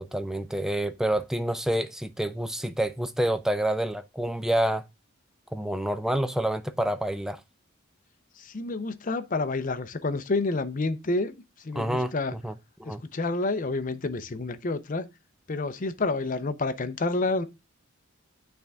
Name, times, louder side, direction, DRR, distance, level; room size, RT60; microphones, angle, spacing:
voice 1, 0.0-4.8 5.5-7.4 11.8-12.5 12.8-13.0, right 1 dB, ahead, 0.4 m, -28 dB
voice 2, 8.4-12.3 12.8-15.1 15.5-17.4, left 3 dB, 40° left, 0.6 m, -29 dB
9.1 x 3.4 x 3.5 m
head